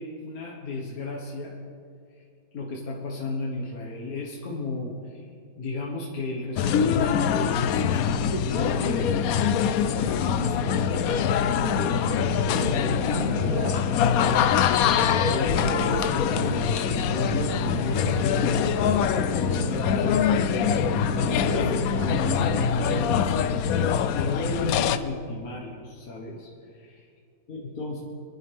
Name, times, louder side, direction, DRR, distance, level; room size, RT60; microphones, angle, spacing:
voice 1, 0.0-1.5 2.5-5.2 5.6-9.1 9.8-14.6 15.0-26.9 27.5-28.0, left 2 dB, 50° left, -3 dB, 1.8 m, -34 dB
sound 1, 6.6-25.0, left 8 dB, 75° left, 0.8 m, -24 dB
sound 2, 8.5-23.2, right 3 dB, 45° right, 0.7 m, -35 dB
25.5 x 11.0 x 3.5 m, 2.3 s
omnidirectional pair, 2.1 m